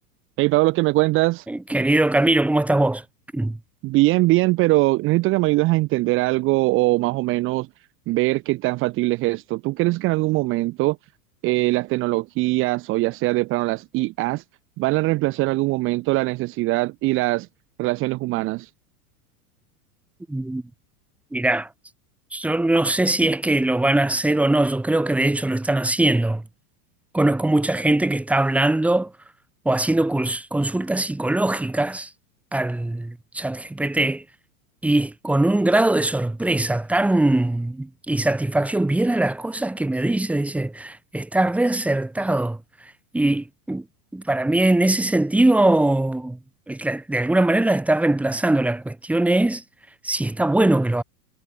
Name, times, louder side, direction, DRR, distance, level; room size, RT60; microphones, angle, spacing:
voice 1, 0.4-1.5 3.8-7.7 8.1-11.0 11.4-14.4 14.8-17.5 17.8-18.7, right 20 dB, 25° right, 2.0 m, -21 dB
voice 2, 1.5-3.0 3.3-3.6 20.3-20.6 21.3-21.7 22.3-26.4 27.1-29.1 29.6-32.1 32.5-34.2 34.8-43.8 44.1-46.4 46.7-49.6 50.0-51.0, right 2 dB, 5° right, 5.0 m, -21 dB
supercardioid pair, 175°, 46 cm